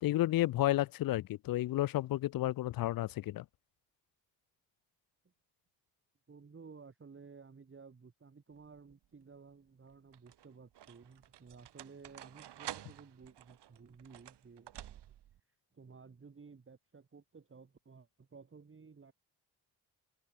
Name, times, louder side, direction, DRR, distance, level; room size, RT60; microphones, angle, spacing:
voice 1, 0.0-3.4, left 15 dB, 50° left, 0.4 m, -31 dB
voice 2, 6.3-15.0 15.5-19.1, right 5 dB, 25° right, 1.4 m, -55 dB
sound 1, 8.6-9.0 9.9-15.4, right 12 dB, 60° right, 1.3 m, -50 dB
hypercardioid pair, 45°, 45 cm